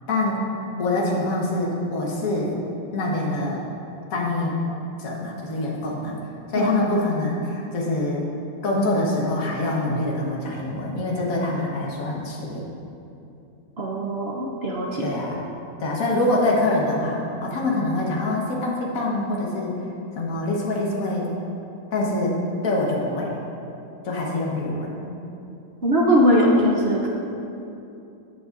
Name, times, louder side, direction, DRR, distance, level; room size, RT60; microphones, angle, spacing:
voice 1, 0.1-0.5 0.8-2.6 2.9-3.6 4.1-4.6 5.0-6.2 6.5-8.3 8.6-12.7 15.0-15.5 15.8-19.7 20.1-21.3 21.9-23.4 24.0-25.1, left 2 dB, 55° left, -3 dB, 1.7 m, -25 dB
voice 2, 13.8-15.1 25.8-27.1, equal, 50° right, -3 dB, 0.8 m, -20 dB
13.5 x 7.9 x 2.6 m, 2.8 s
omnidirectional pair, 1.9 m